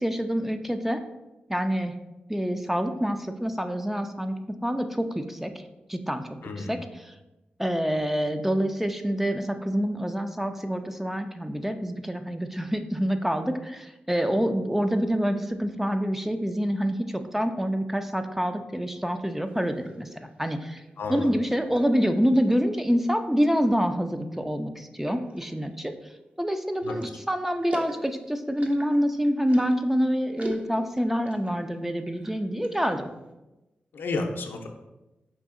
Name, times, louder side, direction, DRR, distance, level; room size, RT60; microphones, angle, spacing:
voice 1, 0.0-1.0 1.5-1.9 2.3-5.5 5.9-6.3 6.7-6.8 7.6-20.1 20.4-20.8 21.1-25.9 26.4-27.0 27.3-33.1, equal, 5° right, 7 dB, 0.4 m, -26 dB
voice 2, 6.4-6.8 21.0-21.3 26.8-27.1 33.9-34.7, left 3 dB, 80° left, 3 dB, 0.6 m, -31 dB
sound 1, 19.5-20.9 21.7-22.6 23.3-23.8 24.3-24.4 25.0-26.1 26.7-29.9 30.3-31.6 31.9-33.2, equal, 40° right, 0.8 m, -42 dB
5.0 x 2.7 x 3.6 m, 1.0 s
cardioid pair, 55°, 4 cm